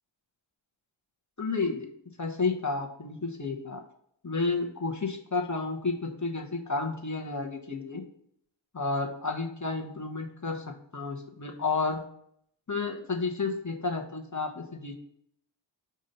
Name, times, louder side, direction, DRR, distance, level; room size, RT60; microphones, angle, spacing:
voice 1, 1.4-1.9 2.2-3.8 4.2-8.0 8.7-12.0 12.7-14.9, left 3 dB, 35° left, 1 dB, 1.1 m, -31 dB
6.7 x 2.7 x 5.4 m, 0.68 s
wide cardioid pair, 40°, 48 cm